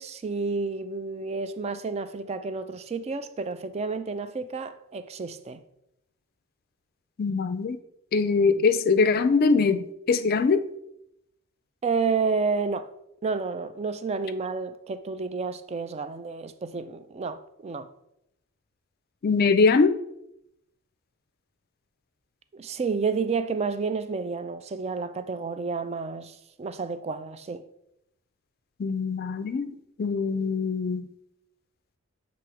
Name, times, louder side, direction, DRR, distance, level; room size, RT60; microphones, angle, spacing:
voice 1, 0.0-5.6 11.8-12.9 13.2-17.9 22.5-27.6, right 4 dB, 30° right, 0.3 m, -30 dB
voice 2, 7.2-7.8 8.1-10.6 19.2-19.9 28.8-31.1, left 4 dB, 45° left, 0.4 m, -22 dB
7.1 x 3.0 x 4.8 m
head